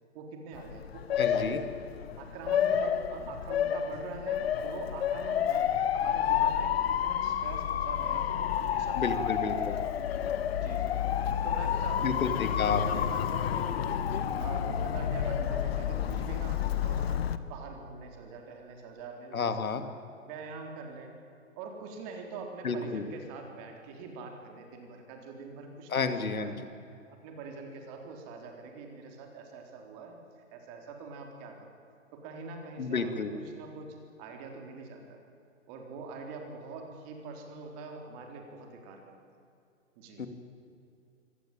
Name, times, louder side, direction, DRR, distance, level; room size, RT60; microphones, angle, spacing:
voice 1, 0.1-1.6 2.2-9.9 10.5-11.0 11.4-13.7 14.4-17.2 17.4-19.5 19.8-19.9 20.2-21.1 21.6-26.0 26.4-26.6 27.2-31.7 32.1-33.2 33.5-33.9 34.2-35.2 35.7-39.2 40.0-40.2, right 4 dB, 30° right, 3 dB, 3.8 m, -44 dB
Motor vehicle (road) / Siren, 0.5-17.4, left 9 dB, 50° left, 1.3 m, -30 dB
voice 2, 1.2-1.6 9.0-9.8 12.0-13.0 19.3-19.8 22.6-23.0 25.9-26.5 32.8-33.3 40.2-40.3, left 5 dB, 90° left, 9 dB, 2.6 m, -31 dB
24.0 x 18.0 x 9.1 m, 2.6 s
hypercardioid pair, 155°, 41 cm